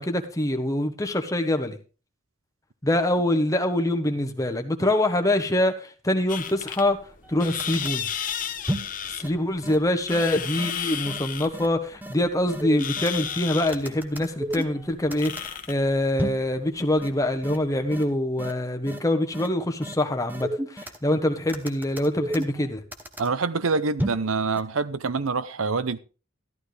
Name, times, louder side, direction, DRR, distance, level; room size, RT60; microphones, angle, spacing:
voice 1, 0.0-1.8 2.8-7.0 7.3-8.1 9.2-22.8, left 1 dB, 15° left, 1.0 m, -25 dB
sound 1, 6.3-18.1, left 8 dB, 40° left, 1.0 m, -34 dB
sound 2, 7.2-7.3 7.6-8.0 8.7-9.0 9.2-9.3 9.6-9.8 10.1-10.2 10.6-10.7 11.1-11.2 11.5-11.7 12.0-12.1 12.5-13.2 13.7-14.8 15.1-15.5 16.2-16.5 17.0-17.1 17.4-17.6 17.9-18.0 18.4-18.5 18.9-19.0 19.3-19.5 19.8-19.9 20.3-21.0 21.5-22.6 22.9-23.3 24.0-24.3 24.6-24.7, right 1 dB, 10° right, 0.9 m, -31 dB
voice 2, 23.2-26.0, right 4 dB, 80° right, 0.7 m, -26 dB
13.5 x 11.5 x 3.3 m
head